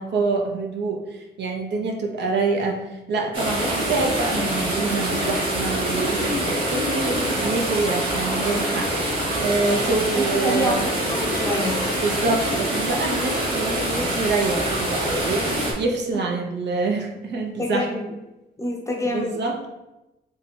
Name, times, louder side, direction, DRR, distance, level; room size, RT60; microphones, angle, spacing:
voice 1, 0.0-9.0 9.4-10.9 12.0-17.9 19.1-19.8, right 3 dB, 70° right, 1 dB, 0.7 m, -26 dB
sound 1, 3.3-15.7, right 1 dB, 30° right, 1.1 m, -25 dB
voice 2, 10.1-11.8 17.6-18.1 18.6-19.4, left 1 dB, 15° left, 0 dB, 0.6 m, -26 dB
2.9 x 2.7 x 4.1 m, 0.98 s
wide cardioid pair, 135°, 18 cm